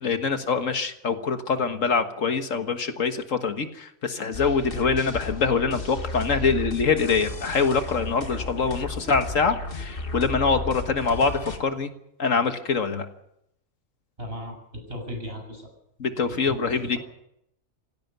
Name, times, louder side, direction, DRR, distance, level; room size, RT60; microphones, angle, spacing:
voice 1, 0.0-11.9 12.2-13.1 16.0-17.0, left 5 dB, 70° left, 8 dB, 1.8 m, -24 dB
sound 1, 4.3-11.6, left 2 dB, 45° left, 2.0 m, -34 dB
voice 2, 14.2-15.7 16.3-17.0, equal, 45° right, 3 dB, 7.2 m, -36 dB
17.0 x 16.5 x 9.2 m, 0.77 s
omnidirectional pair, 1.4 m